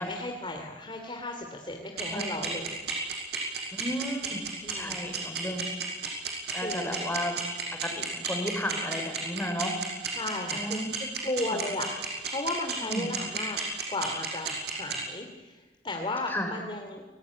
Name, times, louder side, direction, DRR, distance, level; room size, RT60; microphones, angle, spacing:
voice 1, 0.0-2.8 4.6-5.1 6.6-6.9 10.1-13.6 13.9-17.0, left 2 dB, 30° left, 2 dB, 2.8 m, -35 dB
sound 1, 2.0-14.9, right 7 dB, 65° right, 6.3 m, -32 dB
voice 2, 3.7-4.4 4.7-5.6 6.5-7.3 7.8-9.7 10.5-10.9 11.4-11.6 12.8-13.1 16.3-16.6, equal, 10° left, 4 dB, 4.9 m, -33 dB
29.5 x 20.5 x 9.6 m, 1.3 s
head